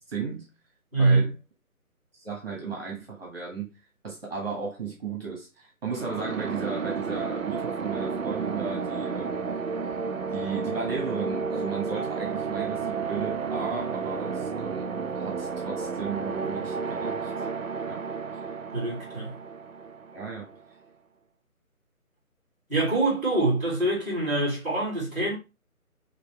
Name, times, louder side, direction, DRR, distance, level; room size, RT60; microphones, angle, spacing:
voice 1, 0.1-0.5 1.0-1.3 2.2-3.7 4.0-9.5 10.3-17.3 17.9-18.0 20.1-20.5, right 5 dB, 40° right, 1.6 m, -35 dB
voice 2, 0.9-1.3 18.7-19.4 22.7-25.3, right 2 dB, 5° right, 2.0 m, -24 dB
sound 1, 5.9-20.6, right 5 dB, 65° right, 0.6 m, -32 dB
5.0 x 3.0 x 3.2 m
figure-of-eight pair, 155°, 44 cm